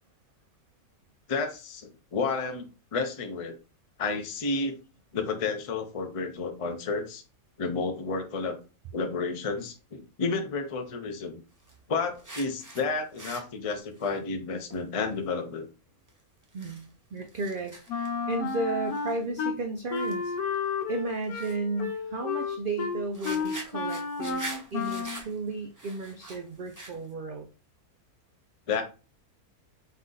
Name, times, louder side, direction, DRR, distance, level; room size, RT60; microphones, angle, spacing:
voice 1, 1.3-2.7 2.9-3.5 4.0-4.7 5.1-7.2 7.6-8.6 8.9-11.4 11.9-15.7 28.7-28.8, left 4 dB, 40° left, 4 dB, 0.5 m, -31 dB
sound 1, 11.6-11.7 12.1-12.8 13.1-14.1 14.7-14.8 15.1-15.2 16.1-16.2 16.4-16.9 17.2-18.1 18.5-18.6 18.9-19.2 19.9-20.1 20.5-20.6 21.3-21.6 22.8-22.9 23.1-27.1, right 2 dB, 20° right, 0.6 m, -43 dB
voice 2, 16.5-20.3 20.9-27.5, right 3 dB, 80° right, 5 dB, 0.4 m, -34 dB
Wind instrument woodwind instrument, 17.9-19.5 19.9-25.2, left 5 dB, 85° left, 1.2 m, -32 dB
4.2 x 2.6 x 3.8 m, 0.32 s
omnidirectional pair, 1.5 m